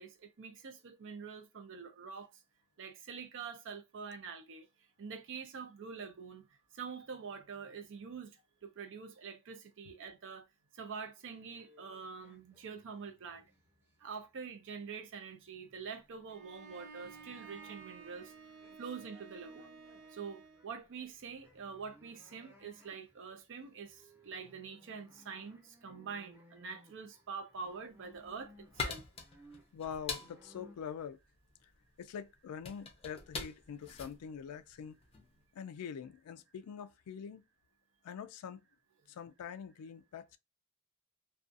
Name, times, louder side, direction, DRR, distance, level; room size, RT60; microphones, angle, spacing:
voice 1, 0.0-2.3 2.8-4.7 5.0-6.5 6.7-10.5 10.7-13.5 14.0-18.3 18.8-19.8 20.1-29.1, right 5 dB, 60° right, 0.5 m, -46 dB
sound 1, 11.3-14.4 14.6-30.7, left 1 dB, 10° right, 0.8 m, -63 dB
Bowed string instrument, 16.3-20.7, right 5 dB, 85° right, 1.0 m, -53 dB
Opening & closing cookie jar (metal), 27.9-35.3, left 4 dB, 25° left, 0.5 m, -44 dB
voice 2, 29.7-31.2 31.6-31.7 32.0-35.0 35.5-37.4 38.0-38.6 39.1-40.4, left 7 dB, 85° left, 0.3 m, -44 dB
2.4 x 2.3 x 2.6 m
head